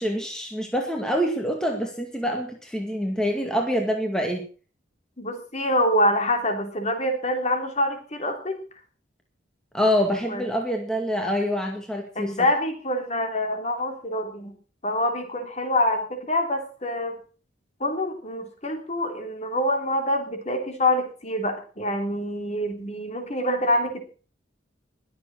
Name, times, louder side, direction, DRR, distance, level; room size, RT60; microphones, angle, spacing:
voice 1, 0.0-4.4 9.7-12.3, equal, 5° left, 2 dB, 2.0 m, -26 dB
voice 2, 5.2-8.6 10.3-10.4 12.1-14.5 14.8-17.2 17.8-24.0, left 1 dB, 35° left, 5 dB, 3.3 m, -26 dB
21.5 x 7.8 x 6.3 m, 0.39 s
head